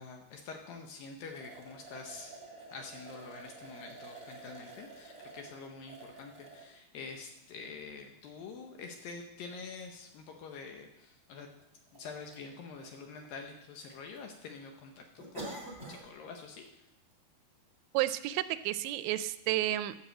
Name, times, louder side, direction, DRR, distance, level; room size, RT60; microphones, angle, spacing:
voice 1, 0.0-2.4 2.7-11.5 11.9-15.6 15.9-16.8, left 4 dB, 75° left, 3 dB, 2.2 m, -46 dB
sound 1, 1.3-6.7 7.4-7.5 9.1-9.2 9.5-9.6 10.5-10.6 10.8-10.9 11.6-12.0 12.3-12.4 12.8-13.6 13.9-14.2 14.5-14.6 15.2-16.1 16.4-16.7 17.1-17.2, right 2 dB, 30° right, 1.0 m, -48 dB
voice 2, 17.9-20.0, right 15 dB, 85° right, 14 dB, 2.7 m, -31 dB
12.0 x 6.0 x 7.6 m, 0.87 s
omnidirectional pair, 5.0 m